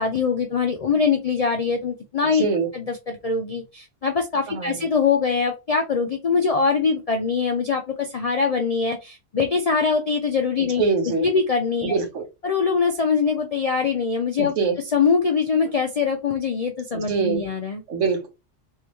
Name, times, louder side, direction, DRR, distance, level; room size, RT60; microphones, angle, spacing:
voice 1, 0.0-2.5 2.7-10.8 11.2-12.0 12.4-14.5 14.9-17.8, left 5 dB, 65° left, 0.3 m, -23 dB
voice 2, 2.3-2.7 4.5-4.8 10.8-11.3 11.8-12.2 14.4-14.8 16.9-17.4 17.9-18.3, right 5 dB, 85° right, 1.3 m, -24 dB
3.3 x 2.8 x 3.0 m
omnidirectional pair, 1.2 m